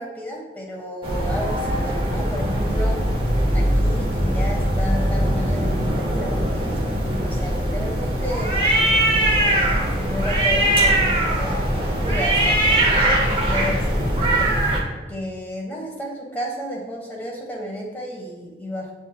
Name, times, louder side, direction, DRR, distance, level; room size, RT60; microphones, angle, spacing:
voice 1, 0.0-3.0 3.5-8.6 9.4-14.5 15.1-18.9, equal, 10° left, -2 dB, 0.7 m, -32 dB
sound 1, 1.0-14.8, right 1 dB, 30° right, 0.6 m, -21 dB
6.9 x 2.6 x 2.2 m, 1.2 s
head